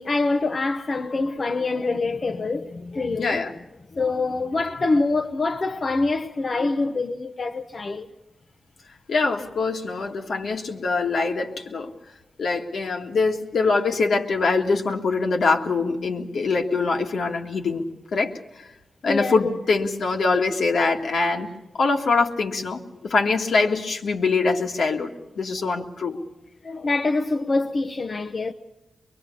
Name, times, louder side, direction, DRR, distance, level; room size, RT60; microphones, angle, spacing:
voice 1, 0.0-3.4 3.9-8.1 19.1-19.5 26.0-26.1 26.6-28.5, left 3 dB, 50° left, 0.9 m, -25 dB
voice 2, 3.2-3.5 9.1-11.9 12.4-17.9 18.1-18.7 19.0-21.5 21.8-26.2, left 4 dB, 75° left, 1.9 m, -23 dB
23.5 x 22.5 x 7.0 m
cardioid pair, 70°, 0 cm